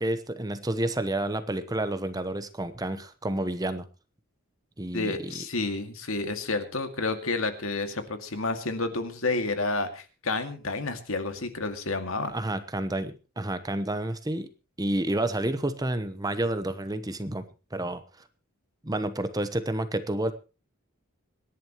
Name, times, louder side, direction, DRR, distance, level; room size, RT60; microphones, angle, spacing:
voice 1, 0.0-3.9 4.8-5.3 12.3-14.5 14.8-17.4 17.7-18.0 18.8-20.3, right 1 dB, 20° right, 11 dB, 1.0 m, -30 dB
voice 2, 4.9-12.3, left 3 dB, 75° left, 7 dB, 2.2 m, -30 dB
25.5 x 11.0 x 3.1 m, 0.32 s
head